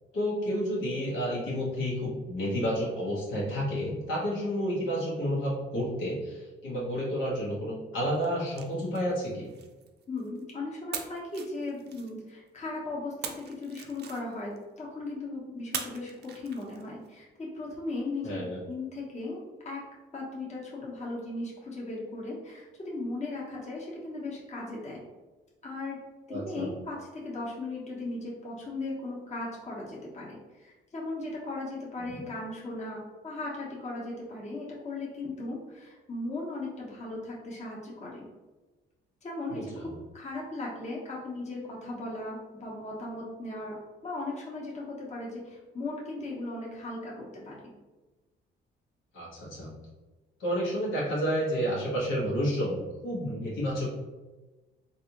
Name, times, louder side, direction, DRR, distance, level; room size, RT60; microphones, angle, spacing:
voice 1, 0.1-9.5 18.2-18.6 26.3-26.7 32.0-32.2 39.5-39.8 49.1-49.7 50.4-53.9, equal, 85° left, -5 dB, 1.2 m, -30 dB
sound 1, 8.1-10.4 10.9-12.5 13.2-14.6 15.7-17.1, right 7 dB, 55° right, 0.4 m, -42 dB
voice 2, 10.1-19.8 20.1-25.0 25.6-26.0 26.3-38.3 39.2-47.7, left 2 dB, 35° left, -4 dB, 1.1 m, -37 dB
3.3 x 2.6 x 2.9 m, 1.2 s
cardioid pair, 90°, 20 cm